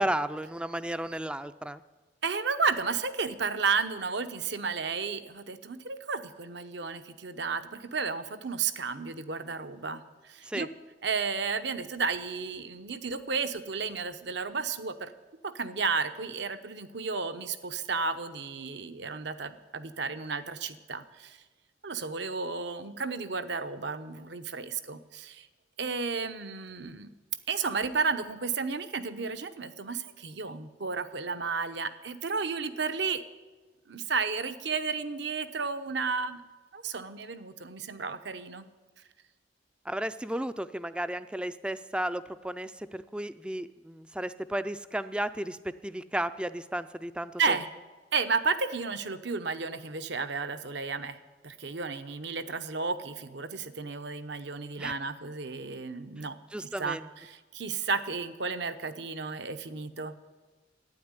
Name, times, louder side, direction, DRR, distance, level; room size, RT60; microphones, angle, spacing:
voice 1, 0.0-1.8 10.5-10.7 39.9-45.6 45.8-47.5 54.8-54.9 56.5-57.0, right 1 dB, 5° right, 13 dB, 0.4 m, -33 dB
voice 2, 2.2-10.7 11.0-15.1 15.4-21.4 21.8-25.5 25.8-27.1 27.5-33.2 33.9-36.4 36.7-38.7 47.4-47.7 48.1-51.2 51.4-60.1, right 4 dB, 65° right, 10 dB, 0.8 m, -32 dB
12.0 x 9.5 x 9.7 m, 1.3 s
head